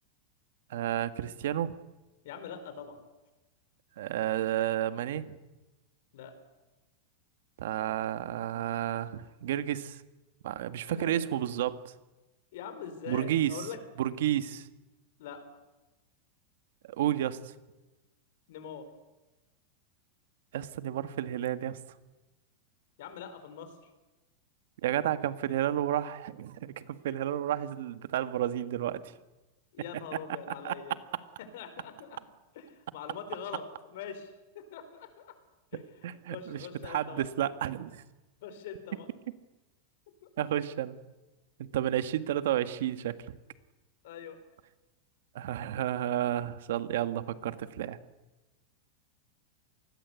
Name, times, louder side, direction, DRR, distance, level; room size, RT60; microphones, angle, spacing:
voice 1, 0.7-1.8 4.0-5.3 7.6-10.0 10.4-11.9 13.1-13.6 14.0-14.7 16.9-17.5 20.5-21.8 24.8-29.1 30.6-30.7 36.0-38.0 40.4-41.0 41.6-43.2 45.3-48.0, right 11 dB, 65° right, 12 dB, 1.6 m, -31 dB
voice 2, 2.2-3.0 6.1-6.3 10.9-11.1 12.5-13.8 15.2-15.4 18.5-18.9 23.0-23.9 29.7-31.0 31.4-32.2 32.5-35.3 35.7-35.8 36.3-37.3 38.4-39.1 44.0-44.4, left 7 dB, 60° left, 9 dB, 4.8 m, -43 dB
27.5 x 20.0 x 8.4 m, 1.1 s
supercardioid pair, 175°, 0 cm